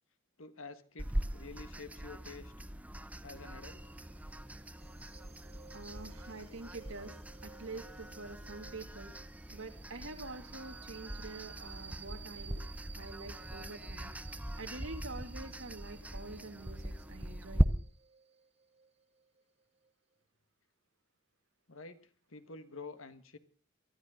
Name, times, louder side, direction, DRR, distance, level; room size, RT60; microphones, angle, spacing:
voice 1, 0.4-2.5 3.2-3.8 21.7-23.4, left 3 dB, 80° left, 11 dB, 1.5 m, -49 dB
sound 1, 1.0-17.6, equal, 5° right, 0.7 m, -39 dB
sound 2, 3.6-19.9, right 8 dB, 30° right, 1.1 m, -56 dB
voice 2, 5.7-7.2 7.4-9.1 9.5-12.6 12.9-17.9, right 3 dB, 75° right, 6 dB, 2.4 m, -47 dB
23.5 x 13.0 x 3.7 m, 0.36 s
head